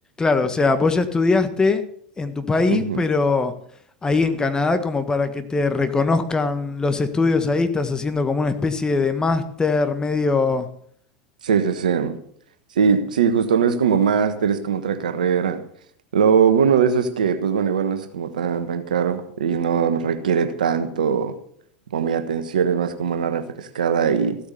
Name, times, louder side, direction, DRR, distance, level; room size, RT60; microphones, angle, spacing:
voice 1, 0.2-1.8 2.2-3.5 4.0-10.7, left 3 dB, 15° left, 1.6 m, -21 dB
voice 2, 2.7-3.0 11.4-12.2 12.8-15.6 16.1-21.3 21.9-24.4, right 7 dB, 75° right, 1.3 m, -21 dB
15.0 x 8.5 x 6.9 m
hypercardioid pair, 85°, 4 cm